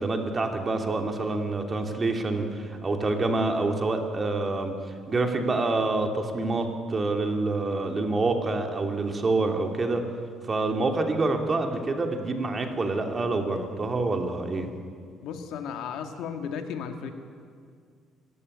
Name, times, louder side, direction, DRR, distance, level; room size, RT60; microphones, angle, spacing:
voice 1, 0.0-4.7 5.1-10.0 10.5-14.7, right 3 dB, 30° right, 4 dB, 2.8 m, -27 dB
voice 2, 15.2-17.1, left 7 dB, 80° left, 6 dB, 2.1 m, -34 dB
25.5 x 14.5 x 9.9 m, 2.1 s
cardioid pair, 110°, 0 cm